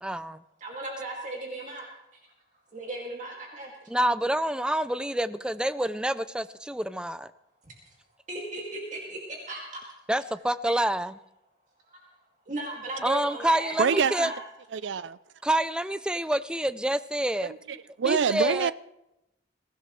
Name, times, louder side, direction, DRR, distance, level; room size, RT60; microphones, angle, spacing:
voice 1, 0.0-0.4 3.9-7.3 10.1-11.2 13.0-14.3 15.4-17.5 18.0-18.7, right 1 dB, 5° right, 0.4 m, -27 dB
voice 2, 0.6-2.2 2.7-3.7 7.6-7.7 8.3-9.8 11.9-12.1 12.5-14.4, right 1 dB, 40° right, 2.3 m, -37 dB
voice 3, 13.8-14.3 14.7-15.2 17.4-18.7, right 6 dB, 80° right, 0.4 m, -26 dB
22.0 x 16.0 x 3.2 m
head